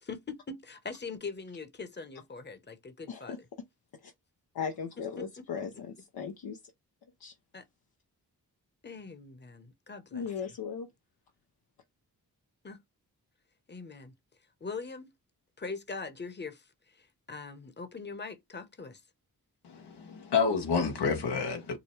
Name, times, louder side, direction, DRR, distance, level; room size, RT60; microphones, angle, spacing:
voice 1, 0.0-3.4 7.5-7.6 8.8-10.3 12.6-12.8 13.7-14.1 14.6-15.1 15.6-19.0, left 4 dB, 25° left, 1.0 m, -42 dB
voice 2, 3.1-3.4 4.0-4.1 4.5-6.6 7.2-7.3 10.1-10.9, left 6 dB, 70° left, 0.8 m, -37 dB
voice 3, 19.6-21.8, left 5 dB, 90° left, 1.3 m, -29 dB
4.9 x 2.2 x 3.1 m
cardioid pair, 45°, 39 cm